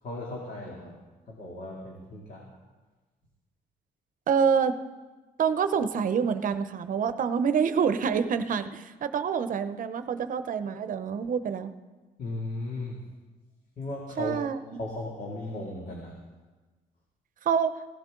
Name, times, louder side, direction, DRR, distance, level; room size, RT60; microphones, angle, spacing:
voice 1, 0.0-1.0 1.3-2.5 12.2-13.0 13.8-14.4 14.8-16.2, left 2 dB, 60° left, -2 dB, 2.6 m, -36 dB
voice 2, 4.3-4.8 5.4-11.7 14.2-14.6 17.4-17.7, right 6 dB, 55° right, 11 dB, 0.8 m, -26 dB
16.5 x 15.0 x 3.8 m, 1.3 s
cardioid pair, 115°, 16 cm